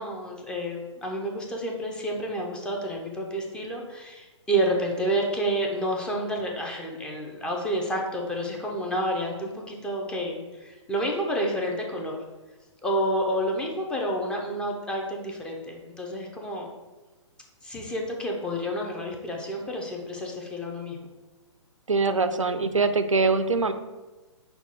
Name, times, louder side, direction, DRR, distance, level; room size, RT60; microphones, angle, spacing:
voice 1, 0.0-12.2 12.8-16.7 17.6-21.1, right 1 dB, 5° left, 0 dB, 0.4 m, -29 dB
voice 2, 21.9-23.7, right 4 dB, 90° right, 10 dB, 0.4 m, -23 dB
5.5 x 2.3 x 4.1 m, 1.2 s
figure-of-eight pair, 125°, 16 cm